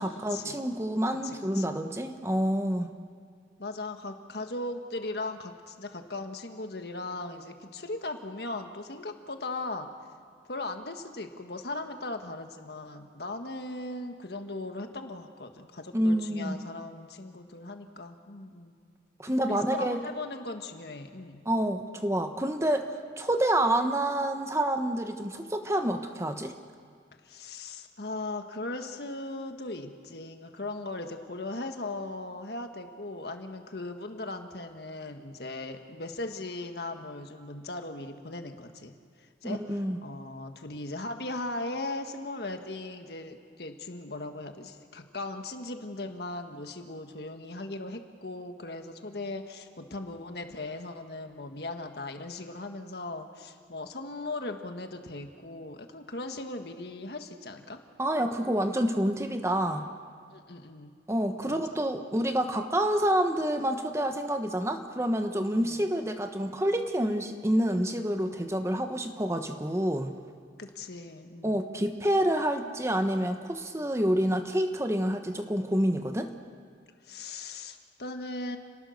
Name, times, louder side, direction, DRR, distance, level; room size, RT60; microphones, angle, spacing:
voice 1, 0.0-2.9 15.9-16.6 19.2-20.0 21.4-22.9 23.2-26.5 39.4-40.0 58.0-59.9 61.1-70.1 71.4-76.3, right 1 dB, 15° right, 6 dB, 1.1 m, -28 dB
voice 2, 1.2-1.7 3.6-9.9 10.5-18.8 19.5-21.4 27.2-38.9 39.2-57.8 60.3-60.9 61.4-61.8 65.5-65.9 70.6-71.6 77.0-78.6, left 2 dB, 60° left, 5 dB, 1.7 m, -38 dB
29.5 x 19.0 x 6.6 m, 2.1 s
head